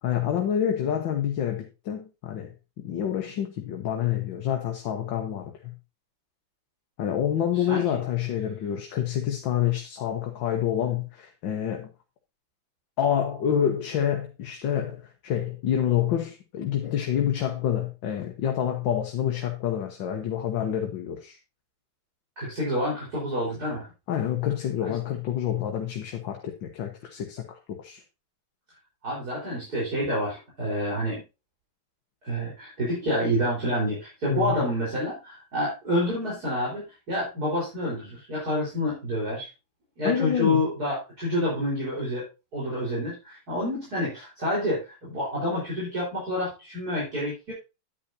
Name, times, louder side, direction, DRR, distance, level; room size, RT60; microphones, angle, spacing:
voice 1, 0.0-5.7 7.0-11.9 13.0-21.4 24.1-28.0 34.3-34.7 40.0-40.6, left 10 dB, 75° left, 1.8 m, -28 dB
voice 2, 22.4-23.8 24.8-24.9 29.0-31.2 32.2-39.5 40.0-42.3 42.5-47.5, left 1 dB, 50° right, 4.9 m, -28 dB
10.0 x 9.5 x 2.7 m
omnidirectional pair, 2.1 m